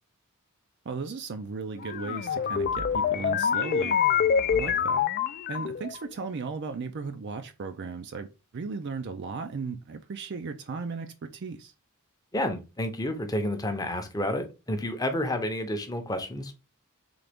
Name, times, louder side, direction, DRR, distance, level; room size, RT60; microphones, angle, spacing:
voice 1, 0.8-4.0 4.5-5.0 5.5-8.3 8.5-11.7, right 4 dB, 50° right, 0.4 m, -36 dB
sound 1, 1.8-6.0, left 7 dB, 40° left, 0.3 m, -26 dB
voice 2, 12.3-16.5, left 1 dB, 15° left, 0.7 m, -30 dB
3.9 x 3.3 x 3.4 m
head